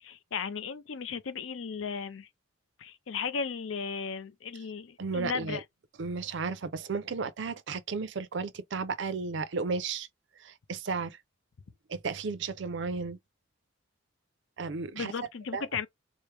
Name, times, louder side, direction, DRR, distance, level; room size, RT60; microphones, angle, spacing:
voice 1, 0.0-2.3 2.8-5.6 14.9-15.9, left 5 dB, 75° left, 0.5 m, -35 dB
voice 2, 5.0-5.6 6.0-10.1 10.4-11.2 11.9-13.2 14.6-15.1 15.5-15.7, right 4 dB, 65° right, 0.5 m, -34 dB
4.5 x 2.0 x 3.2 m
head